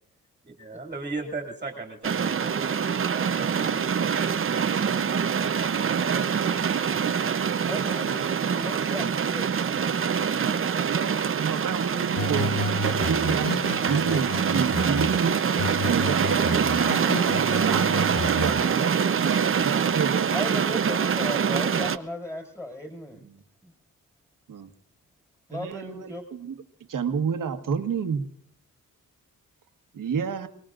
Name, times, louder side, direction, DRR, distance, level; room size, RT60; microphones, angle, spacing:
voice 1, 0.5-4.2, right 3 dB, 20° right, 3 dB, 2.4 m, -37 dB
sound 1, 2.0-22.0, right 7 dB, 40° right, 0.7 m, -25 dB
voice 2, 7.7-9.5 20.3-23.2 23.6-23.7 25.5-26.2, left 1 dB, 10° left, 3 dB, 4.9 m, -36 dB
voice 3, 10.9-12.5 12.8-15.4 15.9-20.3 23.2-23.4 24.5-24.7 25.5-26.6 26.9-28.3 29.9-30.5, right 6 dB, 70° right, 7 dB, 1.4 m, -30 dB
sound 2, 12.2-15.2 15.6-18.6, left 3 dB, 90° left, 1.3 m, -32 dB
28.5 x 19.5 x 2.5 m, 0.62 s
wide cardioid pair, 120°, 33 cm